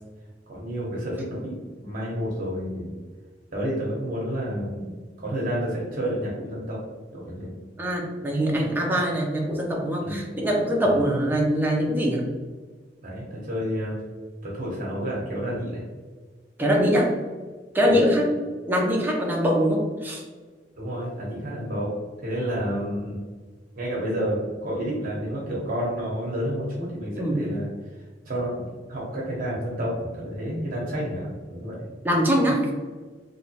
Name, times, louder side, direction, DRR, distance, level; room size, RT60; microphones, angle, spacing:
voice 1, 0.5-2.9 3.5-4.9 5.2-6.8 7.1-7.5 10.0-10.2 10.8-11.0 13.0-14.0 14.4-15.8 17.9-18.1 20.8-21.9 22.2-23.2 23.7-27.7 28.2-31.8, equal, 50° right, -5 dB, 1.1 m, -30 dB
voice 2, 7.8-12.2 16.6-17.1 17.7-18.3 18.7-20.2 27.2-27.4 32.0-32.6, equal, 10° right, -2 dB, 0.7 m, -23 dB
3.3 x 3.0 x 2.9 m, 1.4 s
head